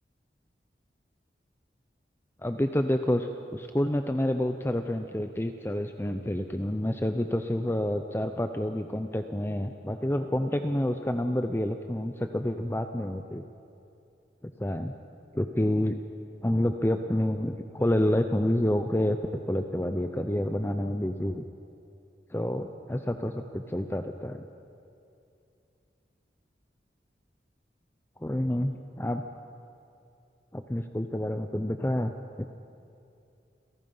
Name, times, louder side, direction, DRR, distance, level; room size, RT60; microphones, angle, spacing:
voice 1, 2.4-13.4 14.6-14.9 15.3-16.0 16.4-19.2 19.5-21.4 22.3-24.4 28.2-29.2 30.5-32.1 32.4-32.5, left 1 dB, 15° left, 7 dB, 0.6 m, -28 dB
29.5 x 17.5 x 5.6 m, 2.7 s
head